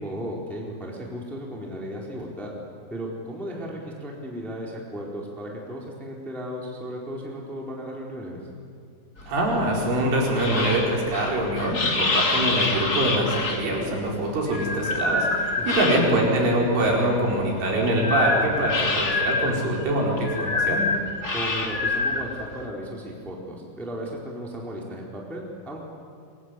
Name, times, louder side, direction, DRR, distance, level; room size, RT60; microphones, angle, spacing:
voice 1, 0.0-2.5 2.9-8.4 15.6-15.9 21.3-25.8, equal, ahead, -2 dB, 3.4 m, -35 dB
sound 1, 9.2-16.4 16.8-22.6, left 3 dB, 35° left, 1.5 m, -26 dB
voice 2, 9.3-20.9, right 1 dB, 65° right, -2 dB, 7.0 m, -24 dB
25.5 x 23.5 x 9.9 m, 2.3 s
omnidirectional pair, 5.9 m